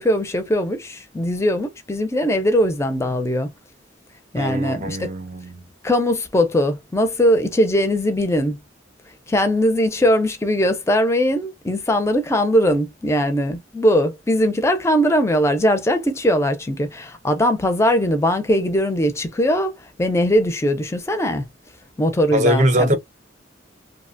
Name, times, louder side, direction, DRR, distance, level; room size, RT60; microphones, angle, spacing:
voice 1, 0.0-3.5 4.3-5.0 5.8-8.6 9.3-19.7 20.0-21.4 22.0-23.0, equal, 15° left, 0.5 m, -20 dB
voice 2, 4.4-5.7 22.3-23.0, right 1 dB, 40° right, 0.5 m, -21 dB
2.8 x 2.1 x 2.5 m
head